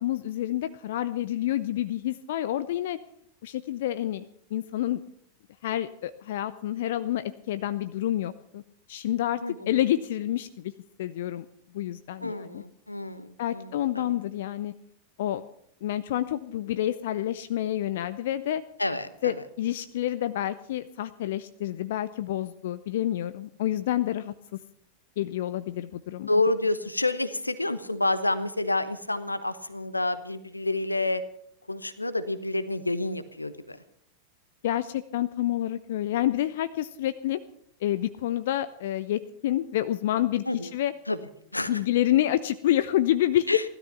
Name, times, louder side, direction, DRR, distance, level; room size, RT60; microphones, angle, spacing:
voice 1, 0.0-3.0 3.4-5.0 5.6-8.6 8.9-9.4 9.7-10.7 11.0-11.5 11.7-12.6 13.4-14.7 15.2-15.4 15.8-18.6 19.2-24.3 25.2-26.4 34.6-37.4 37.8-40.4 40.7-40.9 41.7-43.5, left 13 dB, 55° left, 13 dB, 0.6 m, -28 dB
voice 2, 9.4-9.8 12.2-14.2 18.8-19.4 26.3-31.2 31.7-33.8 40.5-40.7 41.1-41.2 41.5-41.8 43.5-43.6, left 2 dB, 85° left, 13 dB, 0.9 m, -29 dB
16.0 x 13.0 x 5.8 m, 0.70 s
figure-of-eight pair, 90°, 0 cm